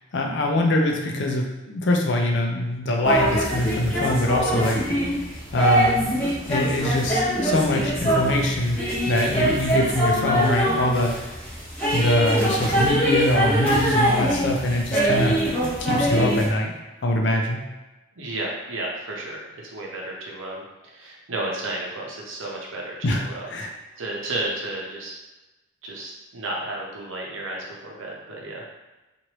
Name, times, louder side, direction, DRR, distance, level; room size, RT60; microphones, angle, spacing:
voice 1, 0.1-4.8 5.5-6.1 6.5-11.1 11.9-15.4 15.8-16.7 17.0-17.6 23.0-23.2 23.5-23.7, left 1 dB, 60° left, 1 dB, 0.5 m, -23 dB
sound 1, 3.0-16.5, right 1 dB, 5° left, 0.9 m, -23 dB
voice 2, 18.2-23.5 24.0-25.2 25.8-28.6, right 2 dB, 80° right, -2 dB, 0.7 m, -32 dB
3.0 x 2.5 x 2.9 m, 1.1 s
head